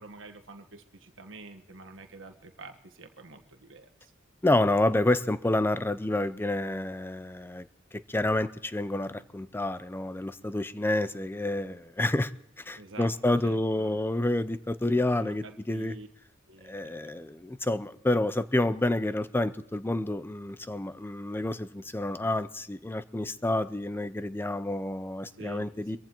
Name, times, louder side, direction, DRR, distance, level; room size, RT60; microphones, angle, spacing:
voice 1, 0.0-4.1 12.8-13.2 13.4-14.0 14.8-16.1 16.5-17.2 25.4-26.0, right 3 dB, 70° right, 5 dB, 1.3 m, -48 dB
voice 2, 4.4-7.7 8.1-12.3 12.7-15.9 16.6-26.0, left 1 dB, 10° left, 14 dB, 0.5 m, -29 dB
25.0 x 15.0 x 3.0 m, 0.78 s
head